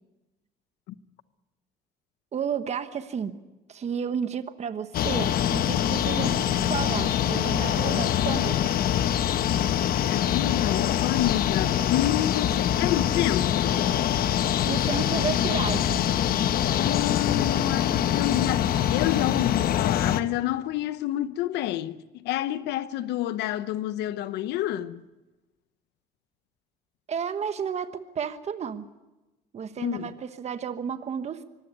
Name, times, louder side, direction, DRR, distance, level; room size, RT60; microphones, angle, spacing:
voice 1, 2.3-3.4 3.7-8.7 14.6-16.1 27.1-28.9 29.5-31.4, right 7 dB, 40° right, 1.2 m, -32 dB
sound 1, 4.9-20.2, left 10 dB, 60° left, 1.1 m, -24 dB
voice 2, 10.0-13.9 16.7-25.0 29.8-30.1, left 13 dB, 85° left, 0.8 m, -29 dB
24.5 x 16.0 x 9.7 m
cardioid pair, 110°, 17 cm